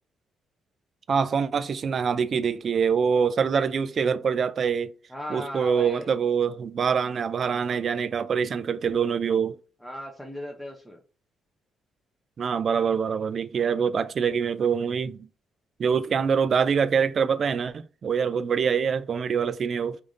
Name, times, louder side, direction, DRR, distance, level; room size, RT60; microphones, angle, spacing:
voice 1, 1.1-4.9 5.3-9.6 12.4-15.2 15.8-20.0, right 6 dB, 50° right, 0.3 m, -25 dB
voice 2, 5.1-6.1 9.8-11.0 16.1-16.5, equal, ahead, 0.6 m, -37 dB
3.4 x 2.5 x 3.7 m
cardioid pair, 90°, 0 cm